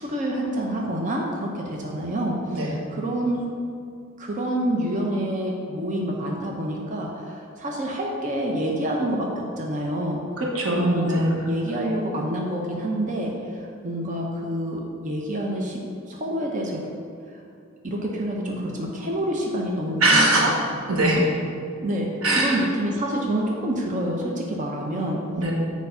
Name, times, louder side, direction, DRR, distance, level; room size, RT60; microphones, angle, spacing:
voice 1, 0.0-3.5 4.2-10.2 10.7-16.8 17.8-20.5 21.8-25.2, right 1 dB, 40° right, -1 dB, 0.8 m, -27 dB
voice 2, 10.4-11.5 20.0-20.5 20.9-21.3 22.2-22.6 25.4-25.5, right 1 dB, 85° right, -1 dB, 1.4 m, -21 dB
7.0 x 4.7 x 5.5 m, 2.3 s
head